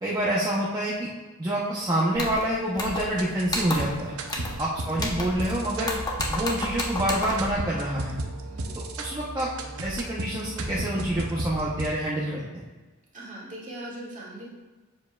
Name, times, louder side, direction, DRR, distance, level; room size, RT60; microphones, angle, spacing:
voice 1, 0.0-1.1 1.4-4.2 4.6-6.0 6.3-8.2 8.8-9.5 9.8-12.6, right 1 dB, 20° right, -6 dB, 0.8 m, -27 dB
sound 1, 2.1-2.4 2.8-3.2 3.5-4.0 4.3-4.6 4.9-5.5 5.8-7.5, left 2 dB, 20° left, 0.9 m, -31 dB
sound 2, 2.8-11.9, right 2 dB, 80° right, 0.8 m, -35 dB
voice 2, 8.4-8.8 13.1-14.5, right 1 dB, 35° right, -5 dB, 2.0 m, -40 dB
7.4 x 7.0 x 2.3 m, 1.2 s
head